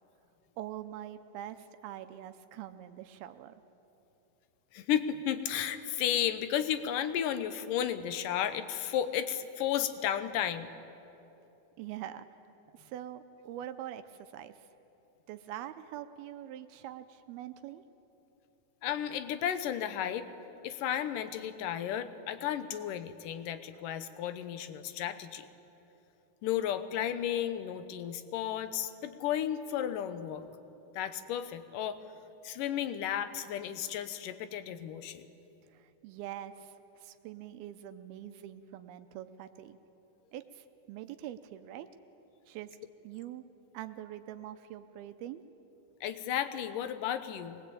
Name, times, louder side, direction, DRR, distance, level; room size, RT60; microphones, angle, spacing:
voice 1, 0.6-3.6 11.8-12.3 12.7-14.5 15.3-17.8 35.7-39.8 40.3-41.9 42.5-42.8 43.0-43.4 43.7-45.4, right 12 dB, 85° right, 10 dB, 2.7 m, -44 dB
voice 2, 4.7-10.7 18.8-20.3 20.6-25.5 26.4-30.4 30.9-32.0 32.4-35.3 46.0-47.6, left 10 dB, 70° left, 11 dB, 2.3 m, -33 dB
24.5 x 20.0 x 8.6 m, 2.9 s
omnidirectional pair, 4.3 m